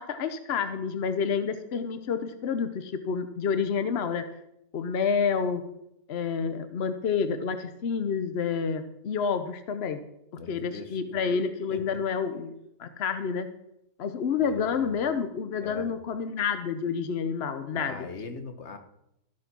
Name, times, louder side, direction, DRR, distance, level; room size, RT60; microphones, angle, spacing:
voice 1, 0.0-4.2 4.7-5.6 6.1-10.0 10.5-12.5 12.8-13.5 14.0-18.1, left 6 dB, 65° left, 9 dB, 0.6 m, -29 dB
voice 2, 10.4-11.2 11.7-12.0 14.4-15.1 15.6-16.0 17.7-18.8, left 4 dB, 40° left, 7 dB, 1.2 m, -41 dB
13.0 x 7.5 x 6.0 m, 0.81 s
omnidirectional pair, 2.1 m